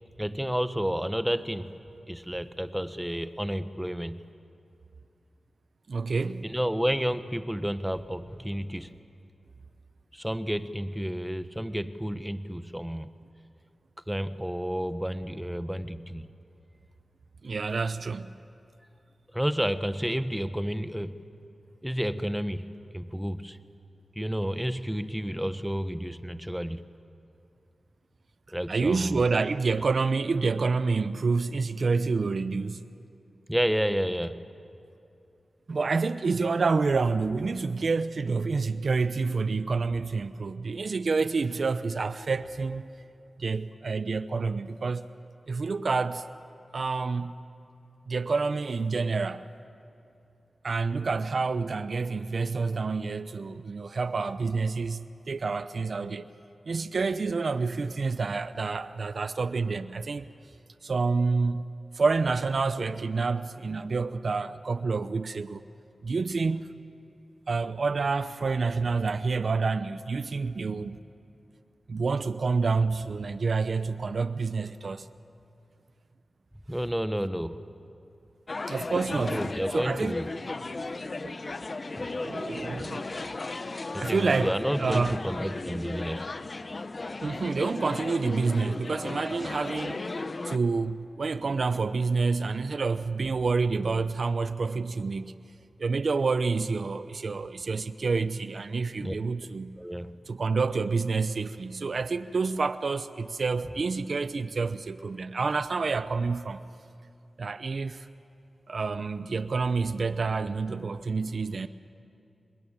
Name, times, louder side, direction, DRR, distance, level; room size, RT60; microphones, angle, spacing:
voice 1, 0.2-1.7 2.1-4.2 6.4-8.9 10.1-13.1 14.1-16.3 19.3-21.2 21.8-23.6 24.1-26.8 28.5-29.2 33.5-34.4 76.7-77.6 79.3-80.3 82.7-82.9 83.9-86.3 99.0-99.1 99.8-100.1, equal, 5° right, 1.4 m, -31 dB
voice 2, 5.9-6.4 17.4-18.3 28.7-32.8 35.7-42.8 43.4-45.1 45.5-46.3 46.7-47.3 48.1-49.4 50.6-56.2 56.7-60.3 60.8-61.6 61.9-65.6 66.0-66.7 67.5-71.0 71.9-75.1 78.7-79.4 79.7-80.2 81.2-81.4 82.2-83.1 84.0-85.2 87.2-90.0 90.4-95.4 95.8-99.8 100.3-106.6 107.4-108.1 108.7-111.7, right 4 dB, 65° right, 0.8 m, -28 dB
sound 1, 78.5-90.6, left 3 dB, 50° left, 1.1 m, -35 dB
27.0 x 21.5 x 8.9 m
cardioid pair, 40°, 0 cm